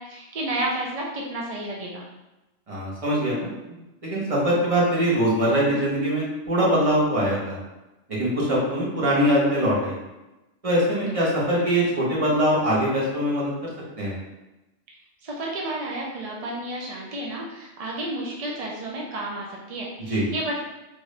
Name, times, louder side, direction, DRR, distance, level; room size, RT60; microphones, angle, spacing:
voice 1, 0.0-2.0 15.2-20.6, right 1 dB, 60° right, -2 dB, 0.4 m, -31 dB
voice 2, 2.7-3.5 4.0-7.6 8.1-10.0 10.6-13.7 14.0-14.1 20.1-20.2, equal, 30° right, -6 dB, 1.1 m, -22 dB
3.5 x 2.6 x 3.2 m, 1.0 s
omnidirectional pair, 1.2 m